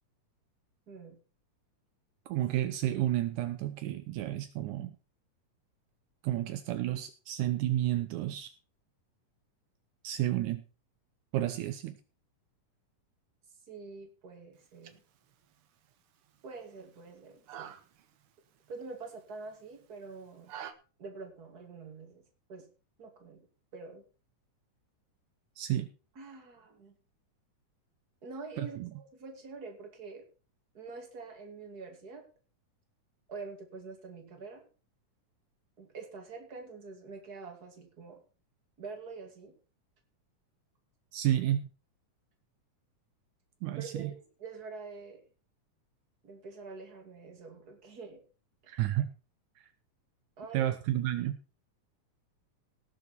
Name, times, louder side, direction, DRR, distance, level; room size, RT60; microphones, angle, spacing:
voice 1, 0.9-1.2 13.7-15.0 16.4-17.8 18.7-20.5 21.0-22.2 22.5-22.7 23.0-23.5 23.7-24.0 26.2-26.9 28.2-30.3 30.7-32.3 33.3-34.7 35.8-38.2 38.8-39.5 43.8-44.1 44.4-45.2 46.2-48.2 48.6-48.8 50.4-50.8, right 4 dB, 30° right, 3 dB, 2.8 m, -46 dB
voice 2, 2.3-4.9 6.2-8.5 10.0-10.6 11.3-12.0 25.6-25.9 28.6-28.9 41.1-41.7 43.6-44.1 48.7-49.1 50.5-51.4, right 13 dB, 80° right, 10 dB, 2.1 m, -31 dB
sound 1, 14.5-20.7, right 9 dB, 60° right, 1.5 m, -51 dB
18.0 x 7.1 x 4.4 m, 0.35 s
omnidirectional pair, 3.6 m